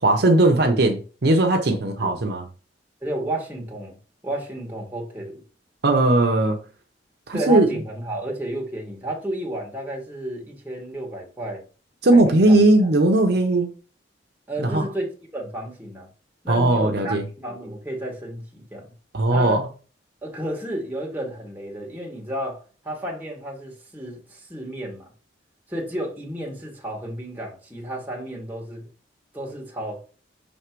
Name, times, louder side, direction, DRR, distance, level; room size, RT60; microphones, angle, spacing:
voice 1, 0.0-2.5 5.8-6.6 7.3-7.7 12.0-13.7 14.6-14.8 16.5-17.2 19.1-19.7, right 2 dB, 65° right, 0.8 m, -18 dB
voice 2, 3.0-4.0 4.2-5.4 7.3-11.6 12.1-12.6 14.5-16.1 16.4-18.9 19.3-19.6 20.2-25.1 25.7-28.9 29.3-30.0, right 1 dB, 10° right, 1.9 m, -32 dB
6.4 x 3.3 x 4.6 m
head